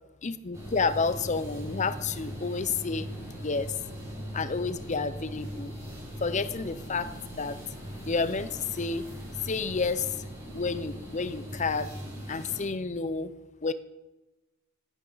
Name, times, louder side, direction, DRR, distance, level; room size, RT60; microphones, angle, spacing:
voice 1, 0.2-3.1 3.4-3.7 4.3-5.7 6.2-7.6 8.1-9.1 9.4-10.1 10.5-11.9 12.3-13.3 13.6-13.7, left 4 dB, 35° left, 14 dB, 0.6 m, -30 dB
sound 1, 0.5-12.7, equal, 15° right, 4.6 m, -40 dB
14.5 x 11.5 x 4.0 m, 1.1 s
head